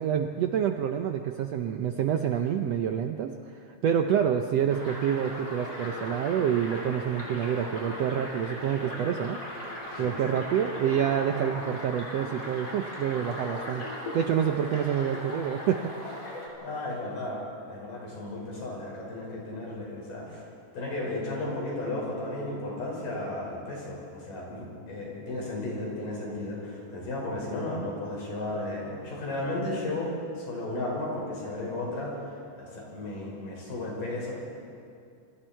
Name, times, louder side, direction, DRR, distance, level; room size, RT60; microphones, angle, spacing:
voice 1, 0.0-9.4 10.0-13.9 14.1-16.4, right 8 dB, 75° right, 5 dB, 1.5 m, -27 dB
sound 1, 4.7-16.5, left 1 dB, 25° left, 4.8 m, -38 dB
voice 2, 16.6-20.5 20.7-32.2 32.6-34.3, left 2 dB, 85° left, -3 dB, 7.2 m, -34 dB
28.0 x 23.0 x 4.5 m, 2.5 s
omnidirectional pair, 3.8 m